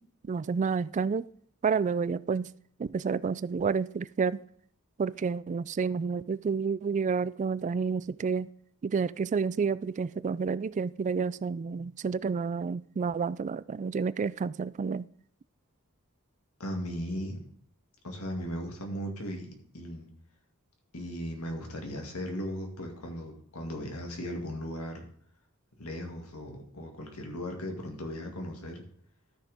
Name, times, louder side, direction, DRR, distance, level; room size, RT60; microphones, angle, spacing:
voice 1, 0.2-1.3 1.6-2.5 2.8-4.4 5.0-8.5 8.8-15.1, right 5 dB, 35° right, 0.3 m, -30 dB
voice 2, 16.6-17.4 18.0-20.1 20.9-25.0 25.8-28.8, equal, 70° left, 2.2 m, -37 dB
13.0 x 6.4 x 3.5 m
head